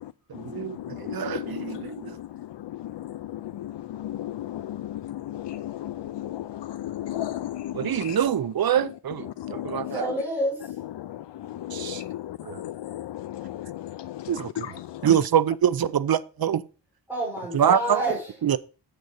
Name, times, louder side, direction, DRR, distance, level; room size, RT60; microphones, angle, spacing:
voice 1, 0.3-2.1 7.7-10.1 11.7-12.0 14.3-14.7 15.0-16.6 17.5-18.0 18.4-18.6, right 9 dB, 55° right, 0.7 m, -25 dB
voice 2, 0.9-1.8 2.9-8.2 9.4-9.9 11.0-11.2 11.5-12.1 13.0-14.7, left 13 dB, 70° left, 0.5 m, -34 dB
voice 3, 9.9-10.7 17.1-18.3, right 1 dB, 5° right, 5.5 m, -28 dB
7.8 x 6.8 x 5.3 m
wide cardioid pair, 115°, 43 cm